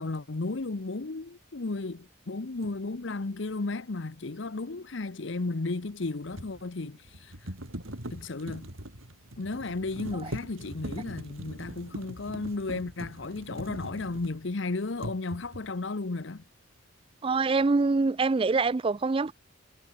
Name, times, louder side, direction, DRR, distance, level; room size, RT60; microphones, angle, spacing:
voice 1, 0.0-7.3 8.1-8.7 9.4-16.4, left 3 dB, 60° left, 0.8 m, -34 dB
sound 1, 2.6-2.8 5.8-14.6 15.0-15.8, right 1 dB, 85° right, 6.9 m, -41 dB
voice 2, 17.2-19.3, right 3 dB, 25° right, 0.3 m, -25 dB
head